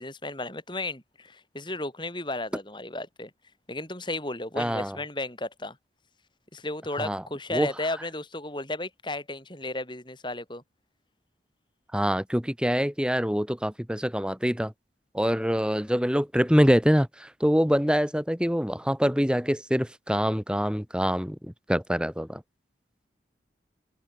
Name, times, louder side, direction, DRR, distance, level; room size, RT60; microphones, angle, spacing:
voice 1, 0.0-3.3 3.7-5.8 6.5-10.6, left 2 dB, 25° left, 6.5 m, -34 dB
voice 2, 4.6-5.0 7.0-7.2 7.5-7.7 11.9-14.7 15.1-21.4 21.7-22.4, equal, 5° right, 3.0 m, -25 dB
head